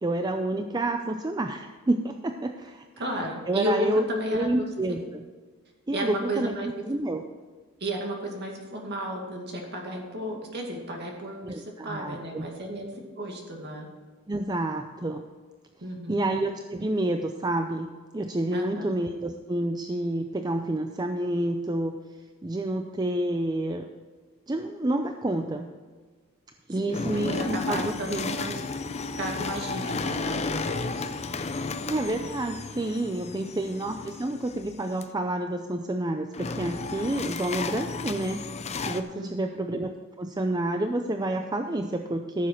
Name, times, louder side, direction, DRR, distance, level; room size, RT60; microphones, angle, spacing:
voice 1, 0.0-2.8 3.5-5.2 5.9-7.2 11.4-12.5 14.3-15.2 16.1-17.9 18.1-21.9 22.4-23.9 24.5-25.7 26.7-28.3 31.9-38.4 38.8-42.5, right 1 dB, 20° right, 5 dB, 0.5 m, -29 dB
voice 2, 3.0-4.7 5.9-6.8 7.8-13.9 15.8-16.3 18.5-18.9 26.7-28.6 29.2-31.1 33.3-33.7 39.2-39.6, equal, 50° right, 1 dB, 2.2 m, -33 dB
sound 1, 26.9-35.0 36.3-39.0, left 4 dB, 30° left, 0.5 m, -33 dB
14.5 x 7.2 x 4.5 m, 1.4 s
head